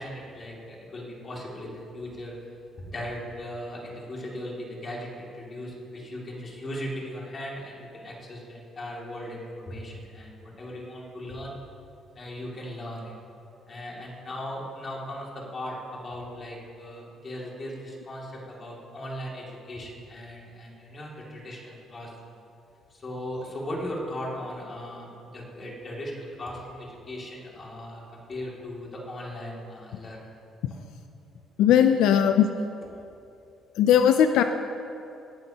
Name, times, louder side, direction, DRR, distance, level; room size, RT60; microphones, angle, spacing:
voice 1, 0.0-2.3 2.8-11.5 12.1-13.1 13.7-22.4 22.9-30.3 31.9-32.1, left 1 dB, 30° left, -3 dB, 2.5 m, -38 dB
voice 2, 31.6-32.5 33.8-34.4, left 9 dB, 85° left, 8 dB, 0.5 m, -19 dB
17.5 x 12.0 x 2.9 m, 2.7 s
cardioid pair, 155°, 0 cm